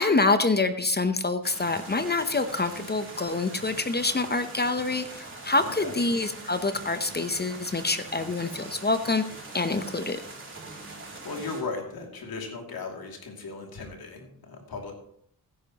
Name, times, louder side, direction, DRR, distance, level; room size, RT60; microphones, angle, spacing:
voice 1, 0.0-9.2 9.5-10.2, left 3 dB, 25° left, 9 dB, 0.8 m, -26 dB
sound 1, 1.4-11.6, right 2 dB, 35° right, 2.9 m, -42 dB
voice 2, 5.6-6.0 11.2-14.9, left 4 dB, 80° left, 1 dB, 2.7 m, -37 dB
16.0 x 10.0 x 3.0 m, 0.67 s
cardioid pair, 85°, 36 cm